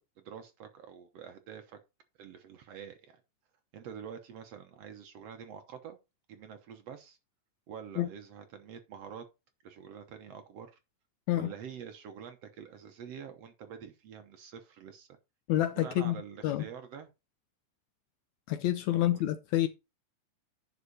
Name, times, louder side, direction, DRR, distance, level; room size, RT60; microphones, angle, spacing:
voice 1, 0.0-1.8 2.2-3.2 3.7-6.0 6.3-7.2 7.7-9.3 9.6-10.7 11.3-15.1 15.7-17.1 18.9-19.2, right 7 dB, 65° right, 1.9 m, -46 dB
voice 2, 15.5-16.6 18.5-19.7, left 13 dB, 75° left, 1.8 m, -28 dB
9.9 x 5.8 x 4.1 m
omnidirectional pair, 3.7 m